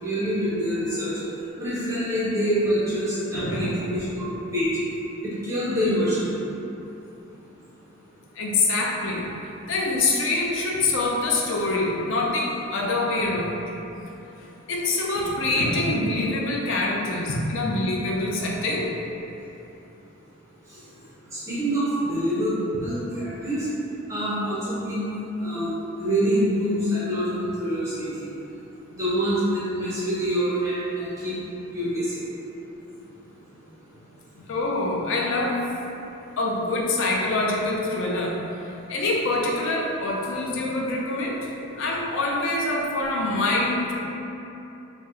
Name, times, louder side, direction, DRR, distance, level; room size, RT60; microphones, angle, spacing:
voice 1, 0.0-1.1 1.6-4.7 5.2-6.3 21.3-22.5 22.8-23.7 24.1-25.1 25.4-25.7 26.0-28.3 29.0-31.4 31.7-32.2, equal, 15° right, -10 dB, 0.4 m, -26 dB
voice 2, 3.3-3.8 8.4-9.3 9.6-13.7 14.7-19.0 34.5-35.7 36.4-38.4 38.9-41.5 41.8-43.9, left 2 dB, 60° left, -2 dB, 0.4 m, -25 dB
2.8 x 2.0 x 3.5 m, 2.9 s
head